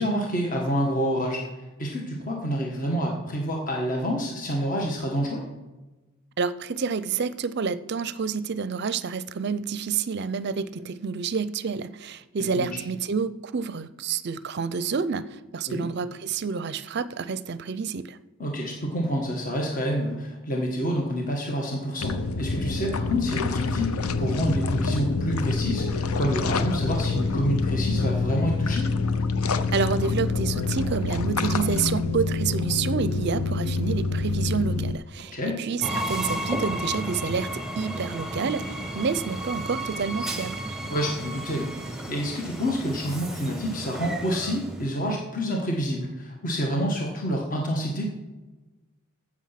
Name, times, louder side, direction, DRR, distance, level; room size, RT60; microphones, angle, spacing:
voice 1, 0.0-1.4 1.8-5.5 12.4-12.8 15.7-15.8 18.4-28.9 35.3-35.6 40.9-41.7 42.1-48.1, equal, 40° left, 0 dB, 1.5 m, -28 dB
voice 2, 6.4-18.2 29.7-40.7, right 5 dB, 50° right, 16 dB, 0.5 m, -29 dB
sound 1, 22.0-34.9, left 3 dB, 90° left, 0.7 m, -26 dB
Train, 35.8-45.0, right 1 dB, ahead, 1.0 m, -33 dB
15.0 x 6.3 x 5.8 m, 1.2 s
head